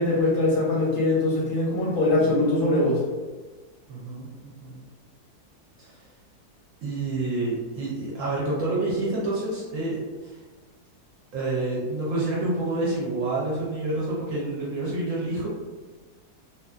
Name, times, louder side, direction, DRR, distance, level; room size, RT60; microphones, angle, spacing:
voice 1, 0.0-3.0, left 2 dB, 65° left, -5 dB, 0.9 m, -22 dB
voice 2, 3.9-4.8 5.8-6.0 6.8-10.4 11.3-15.5, right 2 dB, 65° right, -5 dB, 0.9 m, -28 dB
2.5 x 2.5 x 2.3 m, 1.3 s
omnidirectional pair, 1.7 m